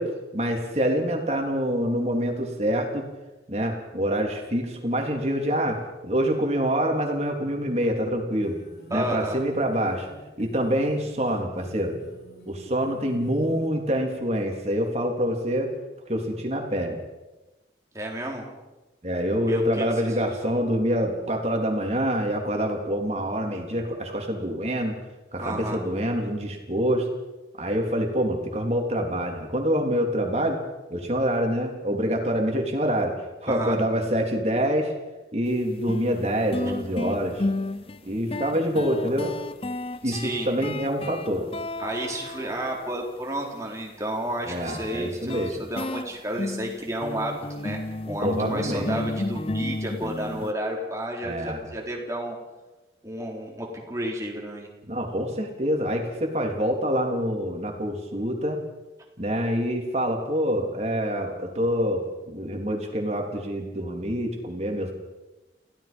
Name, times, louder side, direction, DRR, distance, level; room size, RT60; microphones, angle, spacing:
voice 1, 0.0-3.1 3.5-8.6 8.9-10.1 10.4-11.9 12.5-15.7 16.1-17.0 19.0-25.0 25.3-27.1 27.6-30.6 30.9-34.9 35.3-37.5 38.1-39.4 40.0-41.5 44.5-45.6 48.2-48.9 51.2-51.7 54.9-58.6 59.2-64.9, equal, 35° right, 2 dB, 3.6 m, -26 dB
sound 1, 8.4-13.7, equal, 60° left, 5.3 m, -48 dB
voice 2, 8.9-9.4 17.9-18.5 19.5-19.9 25.4-25.8 33.5-33.8 40.0-40.5 41.8-52.4 53.0-54.7, right 1 dB, 15° right, -1 dB, 4.0 m, -31 dB
sound 2, 35.4-35.5 35.9-43.1 44.7-50.5, left 2 dB, 30° left, 0.7 m, -32 dB
28.5 x 16.5 x 5.4 m, 1.1 s
head